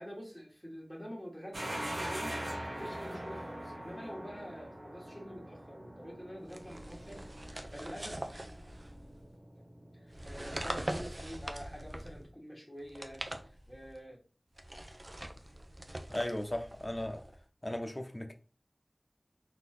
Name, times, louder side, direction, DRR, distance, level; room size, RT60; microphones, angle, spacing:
voice 1, 0.0-2.4 2.7-8.2 10.0-13.2 13.7-14.2, equal, 5° left, 1.8 m, -47 dB
sound 1, 1.5-12.3, right 1 dB, 85° right, 1.0 m, -43 dB
sound 2, 6.5-9.2 10.1-12.3 12.8-14.0 14.5-17.4, right 1 dB, 45° right, 0.6 m, -43 dB
voice 2, 16.1-17.2 17.6-18.3, left 1 dB, 35° left, 0.8 m, -36 dB
4.0 x 2.8 x 3.7 m
wide cardioid pair, 50°, 0 cm